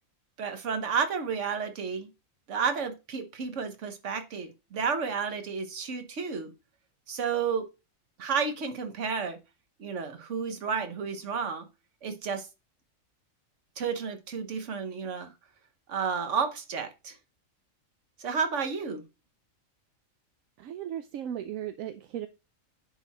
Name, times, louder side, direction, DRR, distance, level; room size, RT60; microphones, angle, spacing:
voice 1, 0.4-2.1 2.5-6.5 7.1-7.7 8.2-9.4 9.8-11.7 12.0-12.5 13.8-15.3 15.9-17.2 18.2-19.0, right 6 dB, 60° right, 1.4 m, -31 dB
voice 2, 20.6-22.3, right 10 dB, 80° right, 1.0 m, -36 dB
10.0 x 4.1 x 4.1 m
omnidirectional pair, 1.4 m